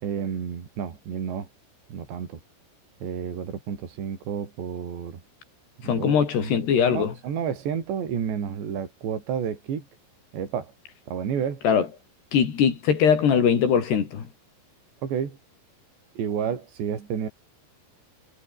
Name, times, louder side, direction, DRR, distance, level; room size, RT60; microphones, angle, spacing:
voice 1, 0.0-1.5 1.9-2.4 3.0-5.2 5.8-6.5 6.9-9.9 10.3-10.7 11.1-11.6 15.0-15.4 16.2-17.3, right 7 dB, 70° right, 6.2 m, -30 dB
voice 2, 5.8-7.1 11.6-11.9 12.3-14.3, left 7 dB, 65° left, 5.5 m, -21 dB
omnidirectional pair, 5.2 m